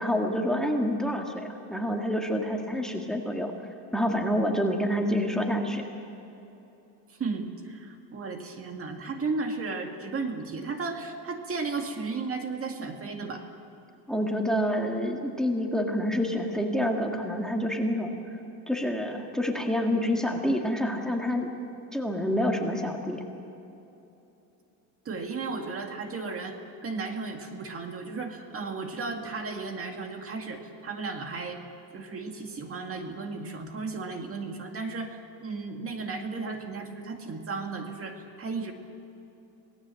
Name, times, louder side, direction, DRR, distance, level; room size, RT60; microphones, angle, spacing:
voice 1, 0.0-3.5 3.9-5.8 14.1-18.2 18.7-21.6 21.9-23.2, equal, ahead, 2 dB, 2.0 m, -27 dB
voice 2, 7.1-13.4 25.1-26.6 26.8-31.6 31.9-38.7, right 4 dB, 35° right, 4 dB, 2.1 m, -34 dB
27.0 x 18.5 x 7.8 m, 2.9 s
cardioid pair, 140°, 40 cm